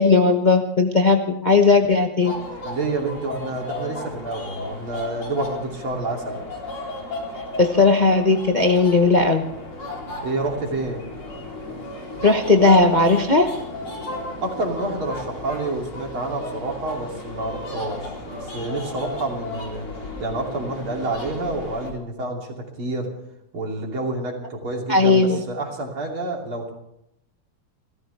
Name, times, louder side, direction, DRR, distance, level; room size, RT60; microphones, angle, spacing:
voice 1, 0.0-2.3 7.6-9.4 12.2-13.5 24.9-25.4, left 3 dB, 30° left, 4 dB, 0.8 m, -17 dB
sound 1, 2.2-21.9, left 2 dB, 75° left, 4.5 m, -34 dB
voice 2, 2.6-6.5 10.2-11.0 14.4-19.9 20.2-23.1 23.5-26.7, right 2 dB, 75° right, 0 dB, 3.8 m, -28 dB
29.0 x 14.5 x 3.4 m, 0.78 s
omnidirectional pair, 2.3 m